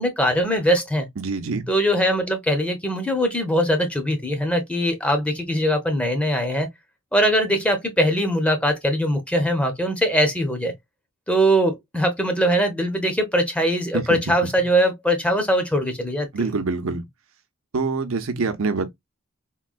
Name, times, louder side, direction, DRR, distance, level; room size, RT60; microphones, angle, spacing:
voice 1, 0.0-1.1 1.7-6.7 7.1-10.7 11.3-16.5, equal, 5° left, 0.7 m, -21 dB
voice 2, 1.2-1.7 13.9-14.3 16.3-17.0 17.7-18.9, right 4 dB, 80° right, 0.7 m, -25 dB
3.7 x 2.3 x 2.3 m
head